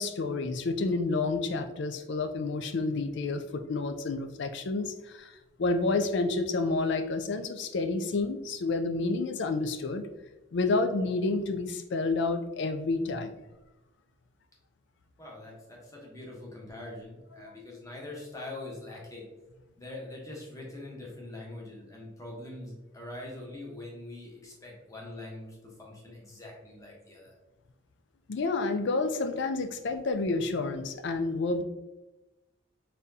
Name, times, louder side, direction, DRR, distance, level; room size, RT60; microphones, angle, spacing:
voice 1, 0.0-5.3 5.6-10.0 10.5-13.3 17.4-17.5 28.3-31.6, left 3 dB, 60° left, 7 dB, 0.4 m, -29 dB
voice 2, 15.2-19.3 19.8-27.3, left 2 dB, 15° left, -2 dB, 1.0 m, -43 dB
4.1 x 3.6 x 2.7 m, 1.0 s
head